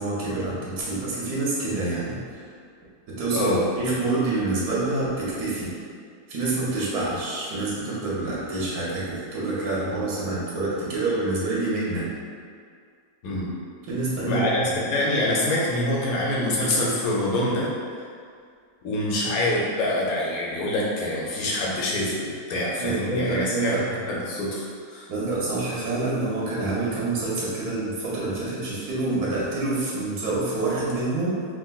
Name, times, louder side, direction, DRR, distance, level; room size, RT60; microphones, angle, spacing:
voice 1, 0.0-2.2 3.2-3.5 3.8-5.7 6.3-12.1 13.9-14.5 22.8-23.9 25.1-31.4, right 2 dB, 80° right, -7 dB, 1.3 m, -27 dB
voice 2, 3.3-3.6 13.2-13.5 14.3-17.7 18.8-25.1 28.6-28.7, left 1 dB, 80° left, -4 dB, 1.1 m, -25 dB
3.8 x 2.2 x 2.3 m, 2.2 s
omnidirectional pair, 1.6 m